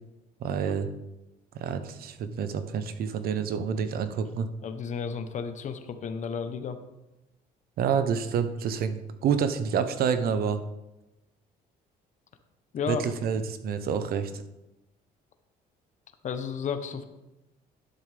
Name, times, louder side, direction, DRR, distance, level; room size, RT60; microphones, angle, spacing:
voice 1, 0.4-0.9 1.5-4.5 7.8-10.6 12.9-14.4, right 7 dB, 65° right, 10 dB, 0.8 m, -28 dB
voice 2, 4.6-6.8 12.7-13.0 16.2-17.0, left 6 dB, 45° left, 8 dB, 0.9 m, -33 dB
11.0 x 7.0 x 3.4 m, 0.97 s
cardioid pair, 110°, 17 cm